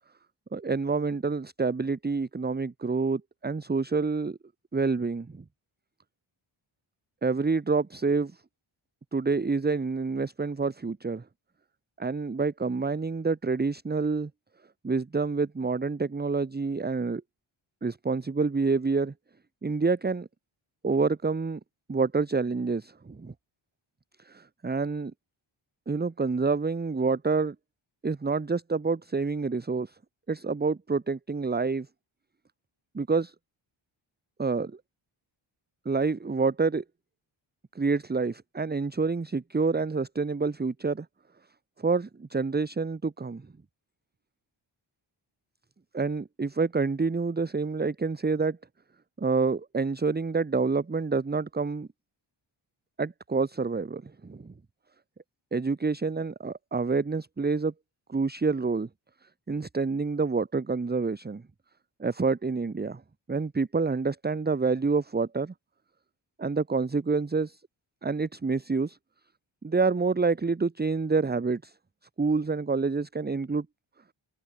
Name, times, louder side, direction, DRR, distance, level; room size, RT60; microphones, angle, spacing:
voice 1, 0.5-4.4 4.7-5.4 7.2-8.4 9.1-11.2 12.0-14.3 14.8-17.2 17.8-19.1 19.6-20.3 20.8-21.6 21.9-23.3 24.2-25.1 25.9-27.5 28.0-29.9 30.3-31.9 32.9-33.3 34.4-34.8 35.8-36.8 37.7-41.1 41.8-43.4 45.9-48.6 49.2-51.9 53.0-54.5 55.5-57.7 58.1-58.9 59.5-61.4 62.0-63.0 63.3-65.5 66.4-67.6 68.0-69.0 69.6-71.7 72.2-73.7, right 4 dB, 20° right, 1.1 m, -27 dB
wide cardioid pair, 125°, 50 cm